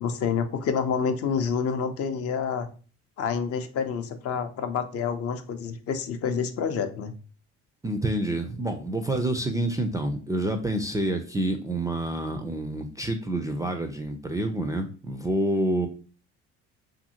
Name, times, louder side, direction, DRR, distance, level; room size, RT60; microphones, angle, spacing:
voice 1, 0.0-2.7 3.2-7.1, left 6 dB, 45° left, 8 dB, 0.5 m, -28 dB
voice 2, 7.8-15.9, right 1 dB, 10° right, 5 dB, 0.3 m, -28 dB
2.7 x 2.6 x 2.7 m, 0.37 s
supercardioid pair, 75°, 32 cm